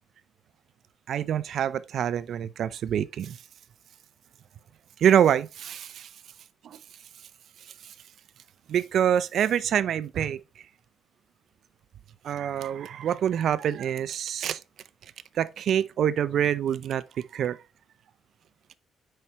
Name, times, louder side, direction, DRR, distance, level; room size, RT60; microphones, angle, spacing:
voice 1, 1.1-3.4 5.0-6.1 8.7-10.4 12.2-14.6 15.4-17.6, right 9 dB, 65° right, 0.5 m, -25 dB
7.6 x 5.7 x 3.0 m
cardioid pair, 90°, 0 cm